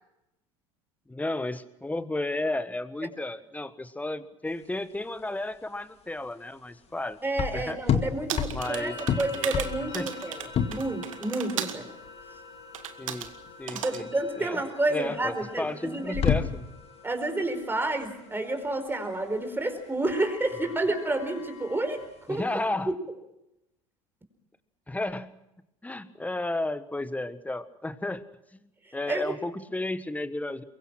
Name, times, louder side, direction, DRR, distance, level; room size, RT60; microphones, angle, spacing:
voice 1, 1.1-7.2 7.5-7.8 8.5-9.5 9.9-10.1 13.0-13.3 13.6-14.1 14.4-14.6 14.9-16.7 22.3-22.9 24.9-25.3 25.8-28.2 28.5-30.6, left 2 dB, 10° left, 13 dB, 1.4 m, -33 dB
sound 1, 4.5-22.7, left 8 dB, 40° left, 2.1 m, -33 dB
voice 2, 7.2-11.9 13.7-16.3 17.0-22.0 22.3-22.4 29.1-29.3, right 2 dB, 15° right, 7 dB, 4.6 m, -30 dB
sound 2, 8.3-11.8 12.7-13.3 13.7-14.0, right 9 dB, 80° right, 1.6 m, -36 dB
sound 3, 8.6-22.1, left 4 dB, 80° left, 4.2 m, -47 dB
23.0 x 22.5 x 6.1 m, 0.88 s
hypercardioid pair, 75°, 17 cm